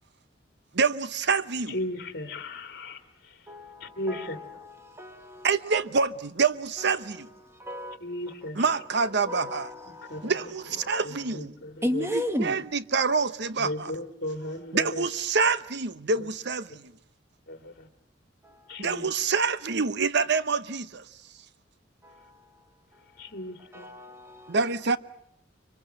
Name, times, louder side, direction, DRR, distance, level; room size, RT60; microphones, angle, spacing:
voice 1, 0.7-1.7 5.4-7.3 8.6-9.7 10.2-11.5 12.1-13.9 14.7-16.8 18.8-21.0 24.5-25.0, right 4 dB, 65° right, 0.9 m, -26 dB
voice 2, 1.7-3.5 3.8-4.4 8.0-8.7 10.1-12.1 13.5-15.0 16.2-16.3 17.5-17.9 18.7-19.1 23.2-23.9, left 1 dB, 55° left, 2.4 m, -36 dB
voice 3, 3.5-5.5 7.0-8.0 9.2-10.3 10.8-11.0 11.8-12.6 18.4-18.8 22.0-22.6 22.9-23.2 23.7-24.6, equal, 15° right, 1.5 m, -35 dB
25.0 x 24.5 x 7.9 m
head